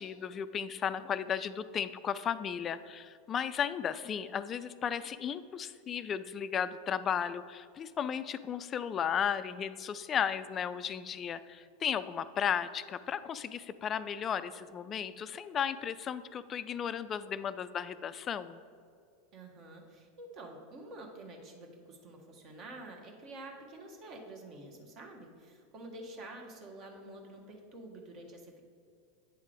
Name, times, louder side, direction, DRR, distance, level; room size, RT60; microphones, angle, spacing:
voice 1, 0.0-18.6, left 8 dB, 35° left, 14 dB, 0.3 m, -35 dB
voice 2, 19.3-28.6, right 2 dB, 45° right, 1 dB, 1.3 m, -48 dB
8.9 x 3.6 x 5.0 m, 2.3 s
hypercardioid pair, 95°, 0 cm